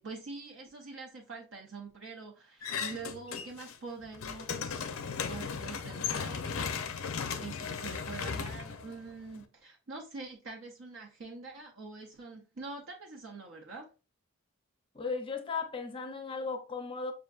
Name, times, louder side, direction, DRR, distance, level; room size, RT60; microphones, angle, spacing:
voice 1, 0.0-5.0 5.3-7.0 7.3-13.9, right 3 dB, 60° right, 0.7 m, -45 dB
sound 1, 2.6-3.7 4.0-9.4, left 6 dB, 75° left, 0.5 m, -36 dB
voice 2, 14.9-17.1, left 4 dB, 25° left, 0.5 m, -36 dB
6.2 x 2.5 x 2.3 m
head